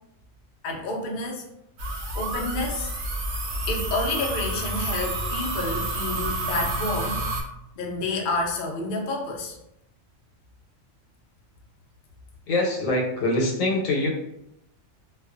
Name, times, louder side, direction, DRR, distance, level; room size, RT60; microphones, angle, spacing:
voice 1, 0.6-1.5 2.2-2.9 3.7-7.2 7.8-9.6, left 2 dB, 65° left, -1 dB, 0.5 m, -29 dB
sound 1, 1.8-7.4, right 2 dB, 65° right, 0.8 m, -29 dB
voice 2, 12.5-14.1, left 2 dB, 80° left, -1 dB, 1.1 m, -24 dB
2.3 x 2.1 x 2.4 m, 0.81 s
omnidirectional pair, 1.4 m